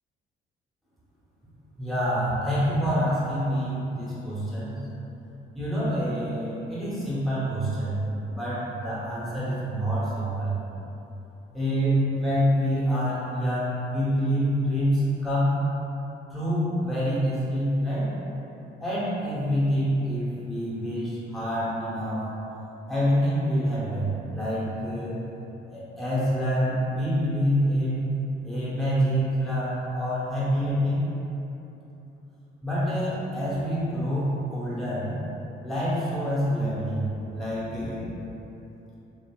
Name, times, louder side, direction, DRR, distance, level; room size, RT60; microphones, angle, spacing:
voice 1, 1.8-4.8 5.5-8.0 8.3-10.6 11.5-15.6 16.3-18.1 18.8-22.3 22.9-25.2 25.7-28.1 28.4-31.1 32.6-35.2 35.6-38.1, equal, ahead, -10 dB, 0.9 m, -26 dB
2.7 x 2.5 x 2.2 m, 3.0 s
cardioid pair, 90°, 20 cm